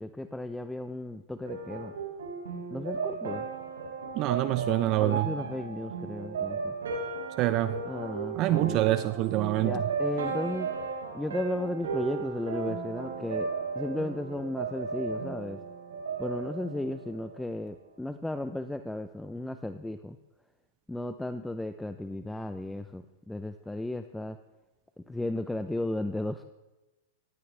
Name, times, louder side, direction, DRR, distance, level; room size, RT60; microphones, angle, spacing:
voice 1, 0.0-1.9 2.7-3.5 5.0-6.8 7.8-8.9 9.6-10.7 11.1-13.5 13.7-15.6 16.2-20.2 20.9-24.4 25.1-26.4, left 1 dB, 5° left, 9 dB, 0.7 m, -35 dB
sound 1, 1.4-17.5, right 5 dB, 90° right, 5.8 m, -35 dB
voice 2, 4.1-5.3 7.4-7.8 8.4-9.8, right 15 dB, 45° right, 12 dB, 0.8 m, -26 dB
18.0 x 16.0 x 3.4 m, 1.1 s
hypercardioid pair, 125°, 0 cm